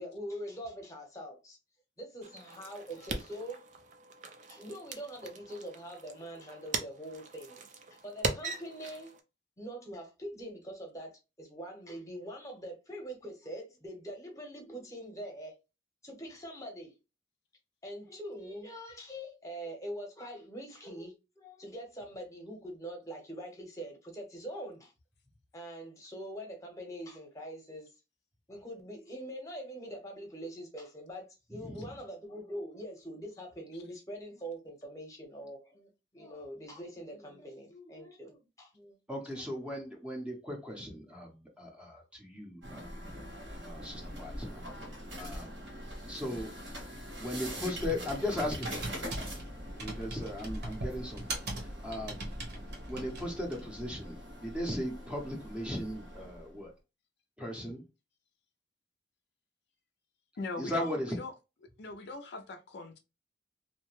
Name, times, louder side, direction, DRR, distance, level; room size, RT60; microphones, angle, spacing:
voice 1, 0.0-1.6 2.0-3.6 4.5-7.7 7.9-9.1 9.6-15.6 16.0-17.0 17.8-24.9 25.5-27.9 28.5-39.0, equal, 15° left, 0.9 m, -43 dB
sound 1, 2.2-9.2, right 3 dB, 40° right, 0.4 m, -40 dB
voice 2, 31.6-31.9 39.1-42.9 43.6-44.6 45.2-45.5 46.1-46.5 47.2-48.8 49.7-51.4 51.8-52.3 52.9-56.7 57.4-57.8 60.6-61.2, left 1 dB, 5° right, 0.7 m, -37 dB
sound 2, 42.6-56.6, equal, 75° right, 1.3 m, -43 dB
Computer keyboard, 46.8-53.8, right 2 dB, 60° right, 0.9 m, -42 dB
voice 3, 60.4-61.3 61.8-63.0, left 3 dB, 60° left, 0.4 m, -41 dB
2.8 x 2.1 x 3.0 m
head